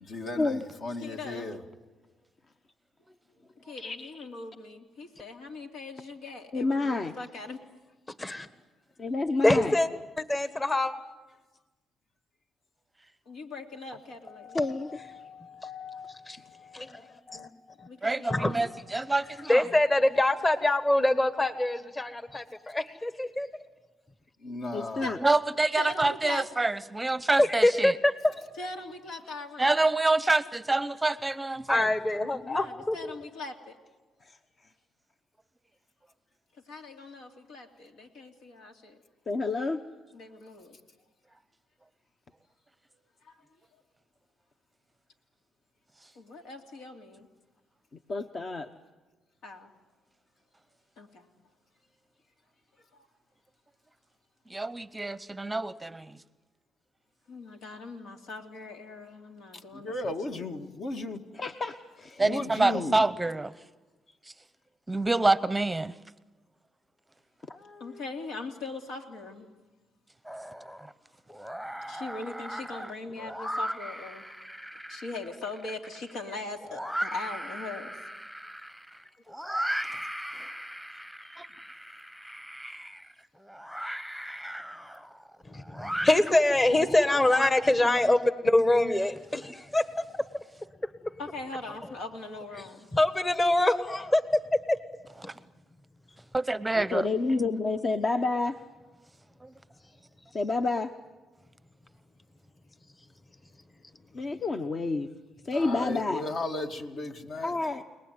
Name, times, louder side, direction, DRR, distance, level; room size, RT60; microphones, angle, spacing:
voice 1, 0.1-1.6 24.4-25.0 59.7-61.2 62.2-63.0 105.5-107.6, left 2 dB, 60° left, 2.4 m, -35 dB
voice 2, 1.0-1.5 3.7-7.6 13.3-14.6 17.9-18.6 25.0-25.1 25.8-26.7 28.6-29.8 32.4-33.8 36.7-39.0 40.1-40.8 43.2-43.4 46.1-47.3 49.4-49.7 51.0-51.3 52.9-53.1 57.3-60.4 67.8-69.5 71.9-74.2 74.9-77.9 91.2-92.9, left 3 dB, 85° left, 3.0 m, -41 dB
voice 3, 3.8-4.2 6.5-7.2 9.0-9.7 14.5-15.0 24.7-25.2 34.2-34.4 39.3-39.8 48.1-48.7 61.3-62.2 67.5-68.0 96.8-98.6 100.3-100.9 104.1-105.1 105.4-106.2 107.4-107.8, left 3 dB, 40° left, 1.1 m, -29 dB
voice 4, 9.4-9.9 10.2-10.9 14.3-17.5 17.8-17.9 18.3-18.6 18.9-23.5 27.4-28.4 31.7-33.1 85.4-89.8 92.9-94.2 94.7-94.8, left 1 dB, 20° left, 1.5 m, -25 dB
voice 5, 18.0-19.6 25.2-27.9 29.6-31.9 54.5-56.2 62.2-63.5 64.9-65.9 81.4-81.5 95.3-95.4 96.3-97.1 99.4-99.5, right 2 dB, 15° right, 0.8 m, -27 dB
sound 1, 70.2-70.9 71.3-88.0, equal, 5° left, 1.2 m, -38 dB
30.0 x 20.0 x 9.6 m
cardioid pair, 90°, 0 cm